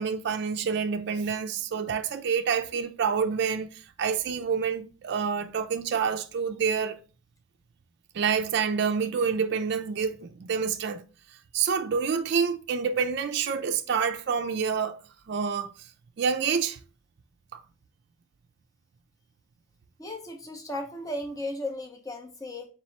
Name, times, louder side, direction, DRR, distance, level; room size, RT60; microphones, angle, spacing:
voice 1, 0.0-7.0 8.1-11.0 11.5-15.0 15.3-15.9 16.2-16.8 17.5-17.6, right 6 dB, 55° right, 0.4 m, -27 dB
voice 2, 20.0-22.7, left 1 dB, 15° left, 0.6 m, -35 dB
4.6 x 2.9 x 3.1 m
head